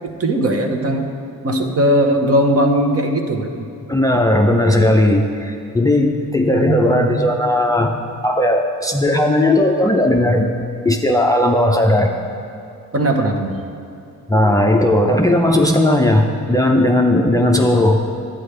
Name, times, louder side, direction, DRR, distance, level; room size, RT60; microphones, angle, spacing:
voice 1, 0.1-1.1 1.4-3.7 6.5-7.3 12.9-13.7, right 1 dB, 45° right, 4 dB, 0.9 m, -18 dB
voice 2, 3.9-7.9 8.2-10.5 10.8-12.1 14.3-18.0, left 1 dB, 10° left, 2 dB, 0.5 m, -16 dB
11.0 x 8.9 x 3.3 m, 2.6 s
cardioid pair, 100°, 35 cm